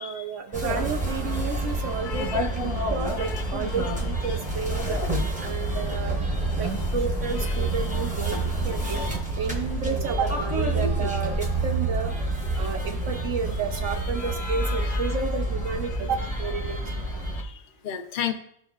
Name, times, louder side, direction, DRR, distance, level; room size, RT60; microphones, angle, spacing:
voice 1, 0.0-6.2 6.5-8.4 8.6-9.1 9.4-16.8, right 5 dB, 70° right, 3 dB, 0.9 m, -31 dB
sound 1, 0.5-17.4, right 1 dB, 5° right, 0.7 m, -28 dB
voice 2, 2.0-2.5 3.2-3.4 7.4-7.5 12.5-12.7 14.2-15.1 15.9-16.0 17.3-18.3, left 8 dB, 60° left, 6 dB, 0.5 m, -35 dB
12.5 x 4.5 x 2.3 m, 0.71 s
omnidirectional pair, 1.4 m